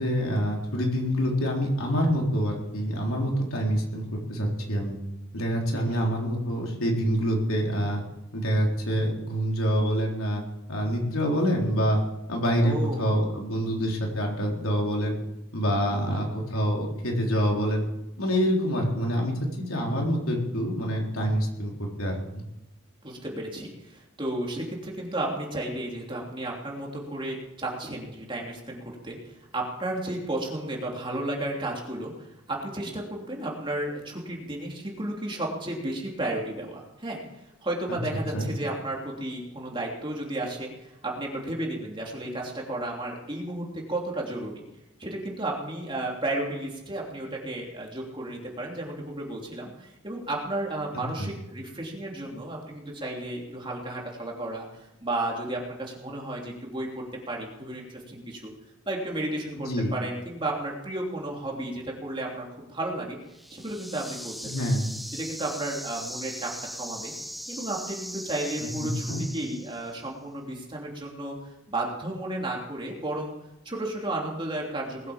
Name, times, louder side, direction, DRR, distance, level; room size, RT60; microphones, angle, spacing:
voice 1, 0.0-5.0 5.3-8.0 8.3-10.4 10.7-12.0 12.3-15.2 15.5-17.8 18.2-22.4 37.9-38.0 38.3-38.5 51.2-51.3 59.6-59.9 64.4-64.8 68.8-69.2, equal, 80° left, 0 dB, 3.8 m, -26 dB
voice 2, 5.7-6.1 12.6-13.2 15.9-16.3 23.0-37.2 37.6-44.6 45.0-58.5 58.8-63.2 63.5-64.5 65.1-66.5 66.8-67.1 67.5-73.3 73.6-75.1, right 1 dB, 25° right, -2 dB, 3.1 m, -33 dB
sound 1, 63.3-70.0, equal, ahead, 0.5 m, -39 dB
20.0 x 8.5 x 7.2 m, 0.91 s
head